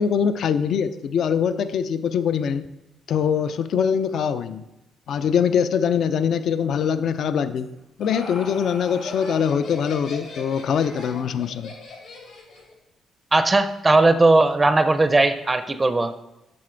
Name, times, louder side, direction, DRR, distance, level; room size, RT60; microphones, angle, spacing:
voice 1, 0.0-2.6 3.1-4.6 5.1-7.7 8.0-11.7, left 7 dB, 65° left, 12 dB, 0.4 m, -23 dB
Laughter, 7.6-12.7, left 3 dB, 80° left, 2.8 m, -38 dB
voice 2, 13.3-16.2, right 2 dB, 20° right, 11 dB, 0.5 m, -18 dB
7.6 x 6.7 x 3.8 m, 0.93 s
cardioid pair, 90°, 0 cm